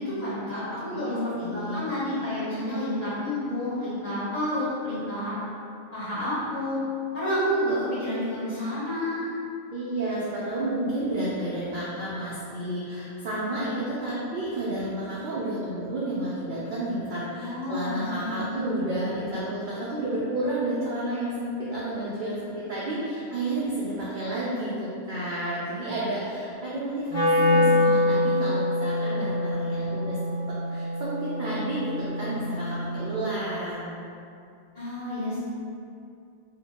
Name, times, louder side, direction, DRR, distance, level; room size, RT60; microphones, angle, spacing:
voice 1, 0.0-5.4 5.9-6.8 7.1-9.3 17.4-18.9 34.7-35.4, left 1 dB, 35° left, -13 dB, 0.9 m, -29 dB
voice 2, 1.4-1.8 9.7-34.0, right 1 dB, 75° right, -8 dB, 0.4 m, -31 dB
Wind instrument woodwind instrument, 27.1-33.2, left 1 dB, 55° left, 1.1 m, -25 dB
2.7 x 2.1 x 2.8 m, 2.5 s
omnidirectional pair, 1.4 m